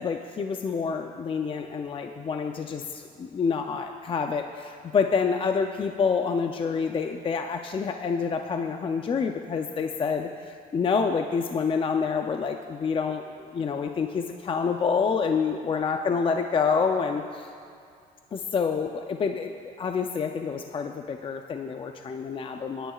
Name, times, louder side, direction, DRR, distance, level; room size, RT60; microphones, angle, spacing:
voice 1, 0.0-17.5 18.3-22.9, left 5 dB, 30° left, 5 dB, 0.5 m, -27 dB
24.0 x 10.0 x 2.4 m, 2.2 s
cardioid pair, 110°, 17 cm